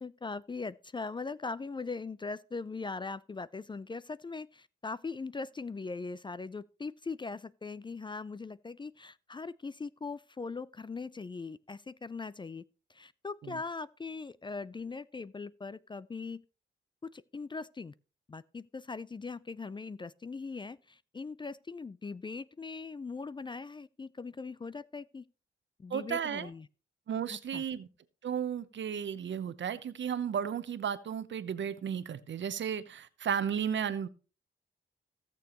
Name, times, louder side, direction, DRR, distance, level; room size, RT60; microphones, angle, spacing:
voice 1, 0.0-12.6 12.9-16.4 17.0-17.9 18.3-25.3 25.8-26.7 27.3-27.6, left 4 dB, 25° left, 0.4 m, -40 dB
voice 2, 25.9-26.5 27.1-27.9 28.2-34.1, right 8 dB, 65° right, 0.9 m, -34 dB
16.5 x 6.9 x 3.0 m
cardioid pair, 70°, 20 cm